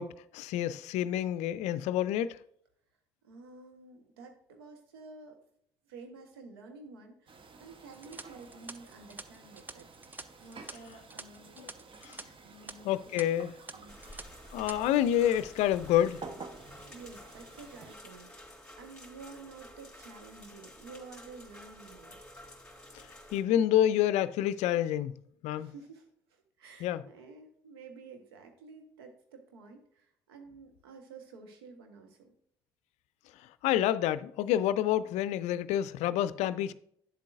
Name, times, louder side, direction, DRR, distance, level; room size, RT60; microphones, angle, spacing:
voice 1, 0.0-2.4 11.6-11.7 12.0-12.2 12.8-13.5 14.5-16.2 22.9-23.1 23.3-25.1 25.4-25.7 26.8-27.0 33.6-36.7, left 11 dB, 65° left, 0.4 m, -28 dB
voice 2, 3.2-5.4 5.8-9.9 10.4-11.6 12.4-13.3 13.7-14.0 16.8-22.2 25.5-32.4, right 4 dB, 85° right, 1.1 m, -51 dB
sound 1, 7.3-18.0, right 4 dB, 45° right, 1.0 m, -51 dB
sound 2, 7.9-12.2 12.5-12.7 13.2-13.3 13.7-14.2 14.5-14.8, right 2 dB, 15° right, 0.5 m, -46 dB
sound 3, 13.9-23.4, left 1 dB, 5° left, 3.5 m, -51 dB
9.4 x 7.5 x 2.5 m
hypercardioid pair, 50°, 12 cm